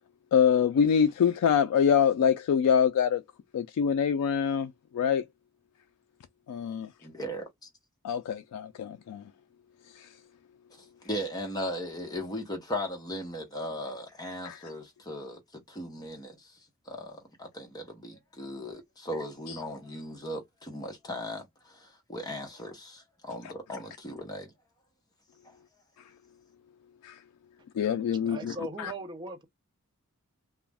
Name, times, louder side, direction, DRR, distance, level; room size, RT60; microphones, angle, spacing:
voice 1, 0.3-3.2 3.5-5.2 6.5-6.9 8.0-9.2 10.0-10.1 14.4-14.7 27.0-27.2 27.8-28.5 28.8-28.9, left 7 dB, 80° left, 0.3 m, -25 dB
voice 2, 7.0-7.5 11.0-16.6 16.9-24.5 25.4-25.5, left 1 dB, 15° left, 0.8 m, -37 dB
voice 3, 28.1-29.5, right 2 dB, 20° right, 0.5 m, -39 dB
2.3 x 2.1 x 3.3 m
head